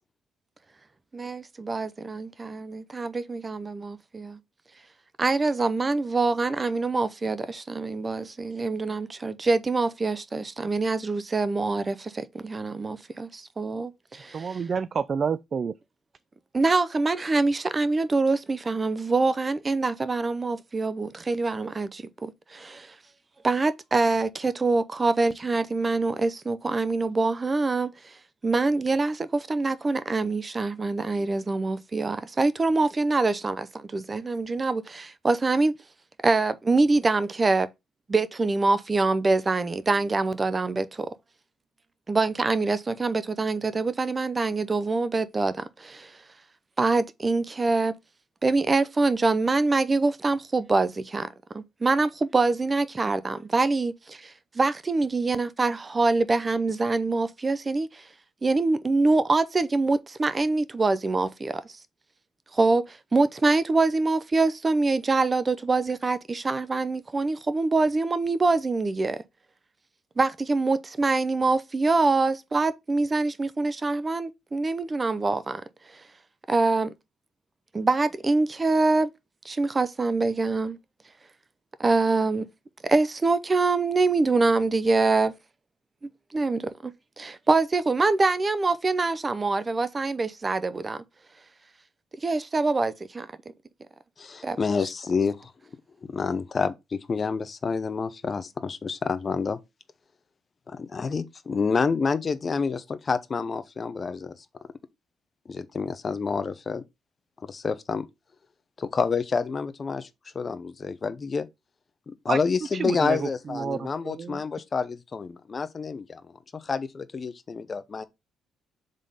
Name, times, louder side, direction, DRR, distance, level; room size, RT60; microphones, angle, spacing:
voice 1, 1.1-4.4 5.2-14.6 16.5-22.9 23.4-27.9 28.4-35.7 36.2-37.7 38.1-41.1 42.1-46.1 46.8-47.9 48.4-51.3 51.5-58.0 58.4-61.6 62.5-69.2 70.2-75.6 76.5-76.9 77.7-79.1 79.4-80.8 81.8-82.5 82.8-85.3 86.3-91.0 92.2-93.3 94.4-94.6, right 3 dB, 30° right, 0.7 m, -25 dB
voice 2, 14.3-15.7 112.3-112.4 112.7-114.4, right 6 dB, 45° right, 0.3 m, -29 dB
voice 3, 94.2-95.5 96.0-99.6 100.7-104.4 105.5-106.8 107.4-108.1 108.8-110.1 110.3-111.5 112.1-118.1, left 5 dB, 35° left, 0.7 m, -28 dB
5.2 x 3.7 x 5.5 m
cardioid pair, 90°, 0 cm